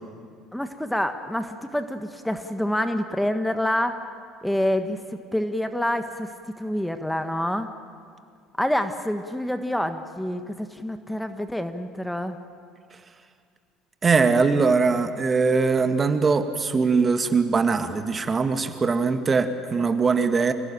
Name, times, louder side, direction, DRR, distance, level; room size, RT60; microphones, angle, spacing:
voice 1, 0.5-4.0 4.4-7.7 8.6-12.4, left 1 dB, 5° left, 8 dB, 1.5 m, -27 dB
voice 2, 14.0-20.5, right 4 dB, 30° right, 8 dB, 1.9 m, -21 dB
28.0 x 18.0 x 9.0 m, 2.2 s
hypercardioid pair, 65°, 0 cm